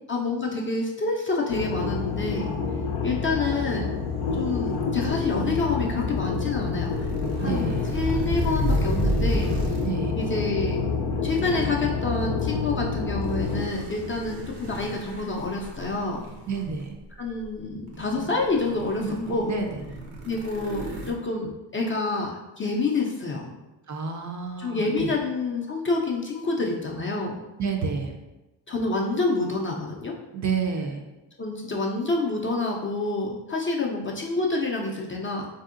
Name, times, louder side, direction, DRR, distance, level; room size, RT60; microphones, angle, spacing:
voice 1, 0.1-2.5 3.0-3.9 4.4-7.1 7.4-9.5 10.1-10.8 11.2-16.2 17.2-19.5 20.2-23.5 24.6-27.4 28.7-30.1 31.4-35.5, left 3 dB, 30° left, -1 dB, 0.4 m, -28 dB
sound 1, 1.5-13.6, left 5 dB, 85° left, 0.6 m, -28 dB
sound 2, 4.5-10.1 10.9-11.2 13.0-16.9 17.4-17.5 17.9-21.1, right 1 dB, 80° right, 0.8 m, -32 dB
voice 2, 7.4-7.8 9.8-10.2 16.5-16.9 19.0-19.8 23.9-25.1 27.6-28.1 30.3-31.0, right 5 dB, 40° right, 3 dB, 0.4 m, -29 dB
3.4 x 2.7 x 2.4 m, 1.0 s
cardioid pair, 75°, 48 cm